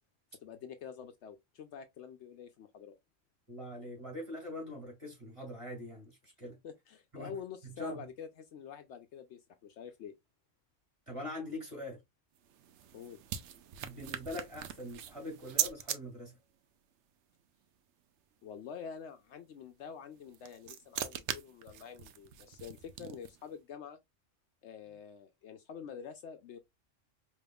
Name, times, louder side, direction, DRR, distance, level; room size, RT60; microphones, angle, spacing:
voice 1, 0.4-3.0 6.6-10.2 12.9-13.2 18.4-24.0 24.6-26.6, left 7 dB, 70° left, 0.8 m, -47 dB
voice 2, 3.5-6.6 7.1-7.4 7.6-8.1 11.1-12.0 13.8-16.4, left 1 dB, 25° right, 2.2 m, -43 dB
sound 1, 12.3-16.0 20.1-23.5, right 10 dB, 70° right, 0.9 m, -40 dB
5.1 x 3.0 x 2.2 m
omnidirectional pair, 1.3 m